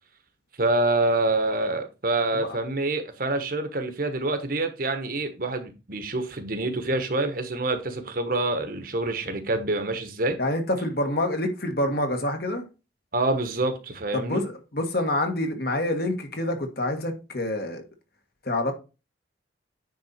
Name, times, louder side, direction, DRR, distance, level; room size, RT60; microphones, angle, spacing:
voice 1, 0.6-10.4 13.1-14.4, right 2 dB, 50° right, 1.2 m, -26 dB
voice 2, 10.4-12.6 14.1-17.8 18.4-18.7, left 1 dB, 55° left, 1.6 m, -27 dB
9.4 x 4.2 x 4.2 m
head